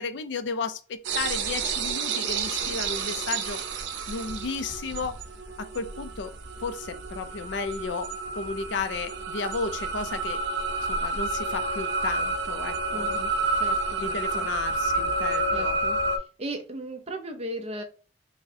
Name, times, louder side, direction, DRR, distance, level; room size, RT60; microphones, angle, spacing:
voice 1, 0.0-3.6 4.1-5.2 5.6-6.3 6.6-8.1 8.4-10.4 10.9-13.1 14.0-15.8, left 4 dB, 75° left, 0.4 m, -33 dB
sound 1, 1.0-16.2, right 3 dB, 80° right, 0.5 m, -30 dB
voice 2, 12.9-14.5 15.5-16.0 16.4-17.8, right 1 dB, 35° right, 0.6 m, -37 dB
4.7 x 2.1 x 2.7 m
head